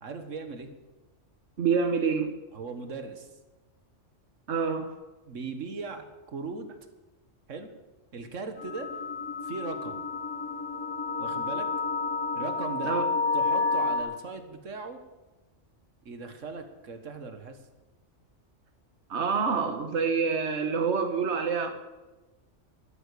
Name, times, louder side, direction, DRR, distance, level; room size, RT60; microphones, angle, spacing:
voice 1, 0.0-0.7 2.5-3.3 5.3-6.7 7.5-7.7 8.1-8.9 9.4-10.0 11.2-11.7 12.4-13.0 13.3-15.0 16.1-17.6, right 4 dB, 85° right, 7 dB, 1.8 m, -38 dB
voice 2, 1.6-2.3 4.5-4.9 12.8-13.0 19.1-21.7, right 5 dB, 65° right, 6 dB, 1.6 m, -26 dB
sound 1, 8.6-14.0, left 4 dB, 85° left, 2.4 m, -30 dB
13.0 x 12.5 x 6.9 m, 1.1 s
omnidirectional pair, 1.3 m